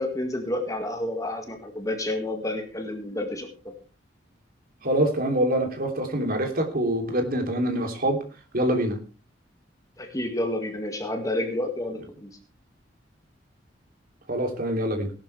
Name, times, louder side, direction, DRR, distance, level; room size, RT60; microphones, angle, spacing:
voice 1, 0.0-3.5 10.0-12.3, left 1 dB, 20° left, 4 dB, 2.0 m, -30 dB
voice 2, 4.8-8.2 8.5-9.0 14.3-15.1, right 1 dB, 50° right, 4 dB, 3.1 m, -25 dB
18.5 x 11.5 x 3.4 m, 0.35 s
head